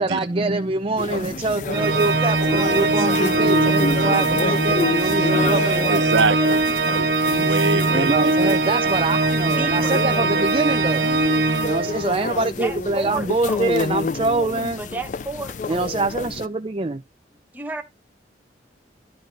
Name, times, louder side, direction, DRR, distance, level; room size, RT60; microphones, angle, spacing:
voice 1, 0.0-6.0 7.9-11.1 11.6-14.8 15.7-17.0, right 2 dB, 30° right, 0.5 m, -24 dB
sound 1, 1.0-16.5, left 4 dB, 40° left, 0.4 m, -29 dB
Organ, 1.7-12.3, right 3 dB, 55° right, 1.6 m, -21 dB
voice 2, 5.9-8.1 8.4-8.9, right 4 dB, 75° right, 0.8 m, -25 dB
voice 3, 9.4-10.0 12.5-13.7 14.8-15.9 17.5-17.8, right 2 dB, 10° right, 1.1 m, -32 dB
12.0 x 4.8 x 3.9 m
head